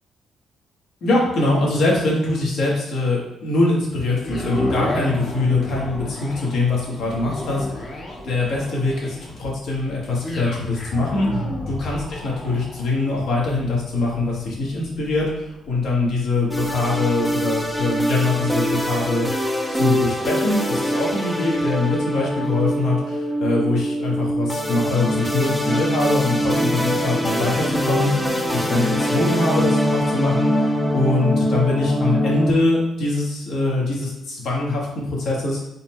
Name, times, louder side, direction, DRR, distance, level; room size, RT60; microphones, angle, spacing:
voice 1, 1.0-7.9 8.2-12.0 12.2-19.3 19.7-35.7, left 2 dB, 70° left, -3 dB, 1.3 m, -23 dB
sound 1, 4.2-18.4 18.9-19.0, left 1 dB, 40° left, 0.8 m, -33 dB
sound 2, 16.5-32.5, equal, 5° left, 0.5 m, -23 dB
4.1 x 2.1 x 4.2 m, 0.86 s
cardioid pair, 90°, 0 cm